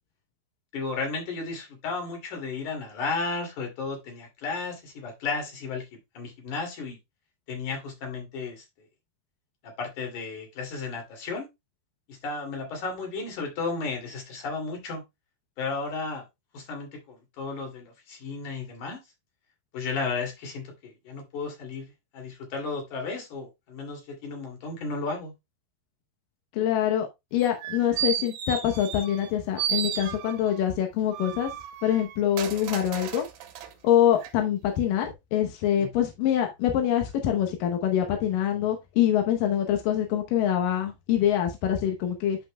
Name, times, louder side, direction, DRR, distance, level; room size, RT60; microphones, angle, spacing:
voice 1, 0.7-5.8 6.2-7.0 7.5-8.6 9.6-11.5 12.1-15.0 15.6-16.2 16.5-19.0 19.7-25.3 35.8-35.9, left 4 dB, 50° left, 3.7 m, -34 dB
voice 2, 26.5-31.5 31.8-33.2 33.8-42.4, left 10 dB, 75° left, 2.0 m, -25 dB
sound 1, 27.4-29.3 29.6-30.6 31.1-33.7 34.2-34.3, right 9 dB, 85° right, 3.4 m, -33 dB
11.5 x 5.1 x 2.2 m
omnidirectional pair, 5.0 m